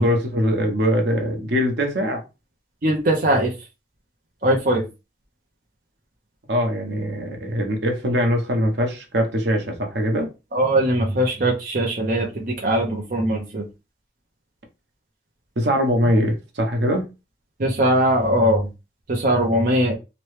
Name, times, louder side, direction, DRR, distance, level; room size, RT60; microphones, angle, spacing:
voice 1, 0.0-2.2 6.5-10.3 15.6-17.1, equal, 80° right, 0.9 m, -22 dB
voice 2, 2.8-3.5 4.4-4.8 10.5-13.6 17.6-18.7 19.1-19.9, right 1 dB, 50° right, 0.6 m, -20 dB
3.0 x 2.2 x 3.1 m
head